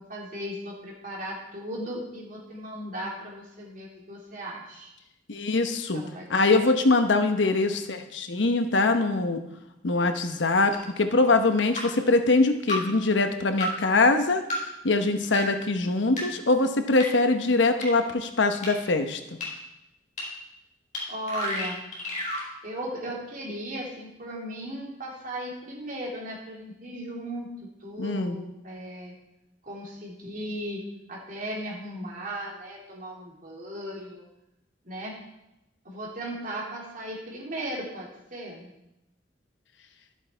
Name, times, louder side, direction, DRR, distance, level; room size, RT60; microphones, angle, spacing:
voice 1, 0.0-4.9 5.9-6.7 10.5-10.9 21.1-21.8 22.6-27.5 27.8-29.1 29.6-30.8 31.1-34.2 34.8-35.2 35.8-38.7, right 1 dB, 45° right, -3 dB, 3.0 m, -37 dB
voice 2, 5.3-6.0 6.3-9.4 9.8-14.4 14.8-19.2 28.0-28.4, left 3 dB, 75° left, 7 dB, 0.9 m, -23 dB
sound 1, 10.7-10.8 11.8-11.9 12.7-12.8 13.6-13.7 14.5-14.6 15.3-15.4 16.2-16.3 17.0-17.1 17.8-17.9 18.6-18.7 19.4-19.5 20.2-20.3 20.9-21.0 21.3-22.5, left 1 dB, 40° left, 4.2 m, -30 dB
12.0 x 7.3 x 4.5 m, 0.88 s
head